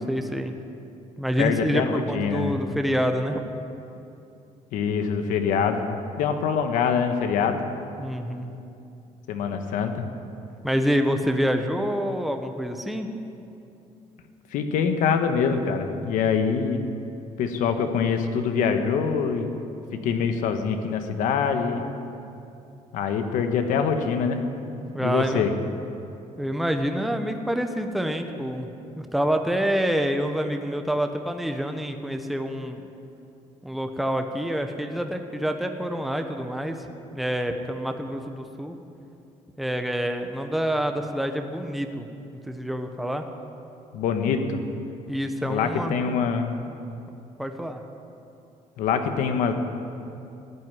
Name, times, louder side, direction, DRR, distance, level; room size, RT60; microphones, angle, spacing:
voice 1, 0.1-0.5 1.2-3.4 8.0-8.5 10.6-13.1 24.9-25.5 26.4-28.7 29.0-32.8 33.6-36.8 37.1-38.8 39.6-42.1 42.4-43.2 45.1-46.1 47.4-47.8, equal, ahead, 5 dB, 1.0 m, -27 dB
voice 2, 1.4-2.6 4.7-7.6 9.3-10.0 14.5-16.9 17.4-19.5 19.9-21.8 22.9-24.4 25.0-25.6 43.9-44.6 45.4-46.6 48.8-49.5, left 6 dB, 80° left, 6 dB, 1.4 m, -24 dB
14.0 x 9.1 x 9.7 m, 2.7 s
cardioid pair, 110°, 13 cm